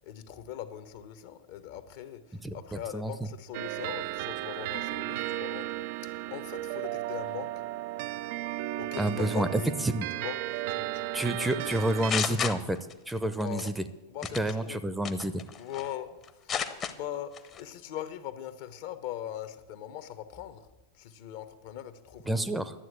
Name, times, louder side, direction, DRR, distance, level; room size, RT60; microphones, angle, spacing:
voice 1, 0.0-7.5 8.8-9.7 10.2-10.4 10.7-11.4 11.8-12.5 13.4-13.7 14.1-14.8 15.5-16.6 16.8-20.7 20.9-22.5, left 11 dB, 50° left, 11 dB, 0.9 m, -41 dB
voice 2, 2.4-3.1 9.0-10.1 11.1-12.8 13.1-13.8 14.4-15.3 22.3-22.7, right 1 dB, 5° right, 12 dB, 0.7 m, -29 dB
sound 1, 3.5-12.1, right 15 dB, 50° right, 0.4 m, -35 dB
sound 2, 11.7-13.1 13.4-13.7 14.2-14.5 15.0-15.9 16.2-16.9 17.3-17.6, left 7 dB, 25° left, 0.9 m, -32 dB
11.5 x 7.8 x 7.7 m, 1.1 s
figure-of-eight pair, 90°, 0 cm